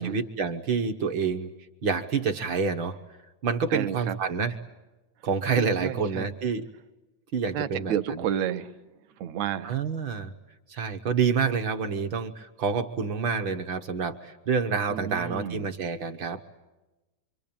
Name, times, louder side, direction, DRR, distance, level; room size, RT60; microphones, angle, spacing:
voice 1, 0.0-1.5 1.8-3.0 3.4-4.6 5.2-6.6 7.3-8.3 9.6-10.3 10.7-16.4, right 5 dB, 55° right, 6 dB, 1.5 m, -28 dB
voice 2, 3.7-4.2 5.5-6.3 7.5-8.7 9.2-9.8 14.9-15.7, right 9 dB, 70° right, 10 dB, 2.3 m, -31 dB
26.5 x 25.5 x 8.8 m, 1.1 s
omnidirectional pair, 3.3 m